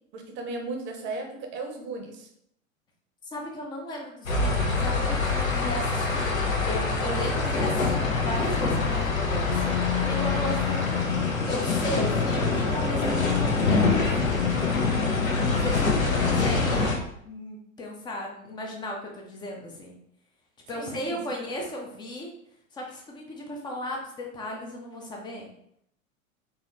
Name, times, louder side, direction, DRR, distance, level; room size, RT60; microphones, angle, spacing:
voice 1, 0.1-2.3 15.9-16.3 20.7-21.2, right 3 dB, 30° right, 3 dB, 0.7 m, -36 dB
voice 2, 3.2-6.4 6.6-9.7 10.0-10.8 11.5-14.5 15.5-16.9 17.2-20.0 20.7-22.3 22.7-25.5, left 1 dB, 10° left, 0 dB, 0.4 m, -36 dB
sound 1, 4.3-17.0, left 4 dB, 80° left, 0.8 m, -25 dB
3.9 x 2.8 x 2.5 m, 0.70 s
figure-of-eight pair, 90°, 40 cm